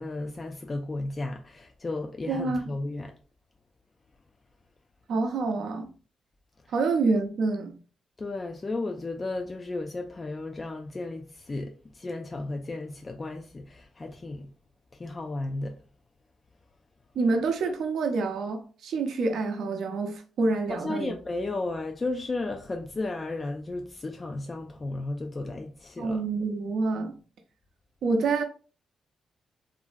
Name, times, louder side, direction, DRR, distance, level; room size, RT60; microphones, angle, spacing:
voice 1, 0.0-3.1 8.2-14.5 14.9-15.8 20.7-26.2, left 2 dB, 30° left, 0.3 m, -34 dB
voice 2, 2.3-2.6 5.1-5.9 6.7-7.8 17.2-21.1 26.0-27.1 28.0-28.4, right 3 dB, 75° right, 0.5 m, -27 dB
2.9 x 2.5 x 2.4 m
cardioid pair, 95°, 0 cm